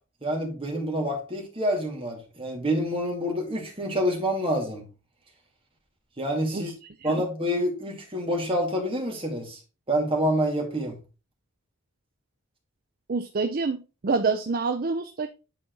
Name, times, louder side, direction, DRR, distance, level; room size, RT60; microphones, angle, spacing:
voice 1, 0.2-4.8 6.2-6.7 7.0-9.6 9.9-11.0, equal, 25° right, 2.3 m, -27 dB
voice 2, 13.1-15.3, right 4 dB, 45° right, 0.5 m, -27 dB
9.2 x 4.2 x 3.9 m
head